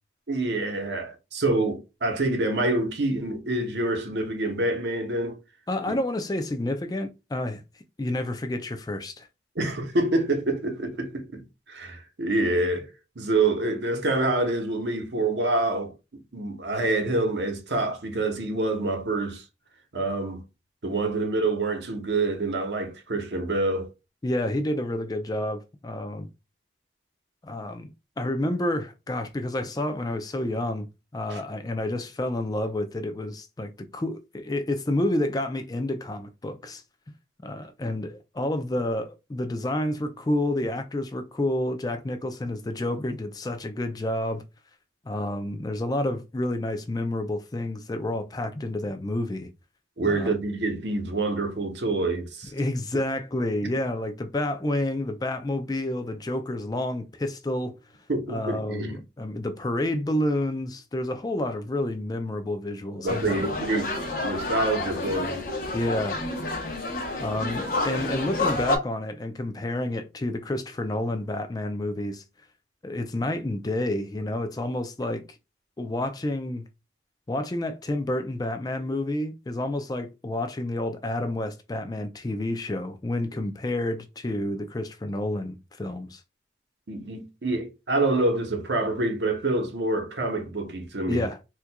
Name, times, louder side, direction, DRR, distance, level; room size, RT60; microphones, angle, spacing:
voice 1, 0.3-5.4 5.9-6.0 9.6-12.9 13.2-19.4 19.9-20.4 20.8-23.9 31.3-31.4 50.0-52.5 53.6-53.7 58.1-59.0 63.0-64.0 64.2-65.5 86.9-91.3, right 2 dB, 75° right, 0.9 m, -27 dB
voice 2, 5.7-7.6 8.0-9.3 24.2-26.3 27.4-27.9 28.2-30.9 31.1-36.8 37.4-44.4 45.1-49.5 50.0-50.3 52.5-57.7 58.3-63.4 65.7-66.2 67.2-72.2 72.8-75.2 75.8-76.7 77.3-86.2 91.1-91.4, left 1 dB, 20° left, 0.4 m, -29 dB
sound 1, 63.1-68.8, left 2 dB, 50° left, 0.9 m, -29 dB
4.3 x 2.4 x 2.2 m
head